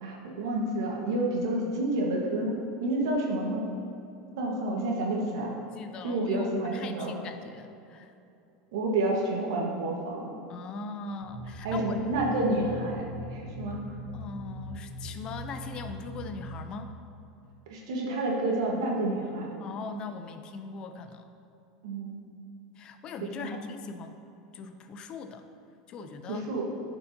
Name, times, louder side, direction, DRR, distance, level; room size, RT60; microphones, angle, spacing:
voice 1, 0.0-3.6 4.4-5.5 6.0-7.1 8.7-10.4 11.6-13.0 13.3-13.8 17.7-19.5 21.8-22.3 23.4-23.6 26.3-26.7, right 2 dB, 80° right, -1 dB, 1.3 m, -29 dB
voice 2, 5.7-8.1 10.5-12.0 14.1-16.9 19.6-21.3 22.8-24.2 24.5-25.4 25.9-26.5, left 4 dB, 40° left, 8 dB, 0.5 m, -40 dB
sound 1, 11.2-16.5, equal, 75° left, 1.4 m, -40 dB
10.0 x 4.4 x 2.7 m, 2.7 s
supercardioid pair, 120°, 2 cm